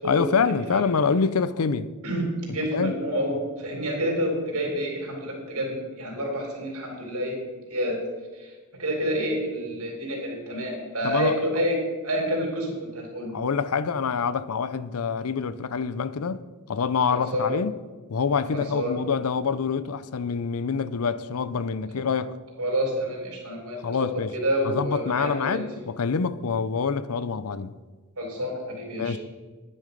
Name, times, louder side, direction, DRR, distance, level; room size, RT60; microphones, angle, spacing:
voice 1, 0.0-1.9 2.5-3.0 11.0-11.4 13.3-17.7 18.1-22.4 23.8-24.3 24.6-27.7 29.0-29.2, left 5 dB, 70° left, 0.6 m, -26 dB
voice 2, 2.0-7.4 7.7-8.0 8.3-8.5 8.8-13.3 17.1-17.5 18.5-18.9 22.6-25.7 28.2-29.1, equal, 85° right, 3.8 m, -28 dB
10.5 x 9.6 x 5.2 m
head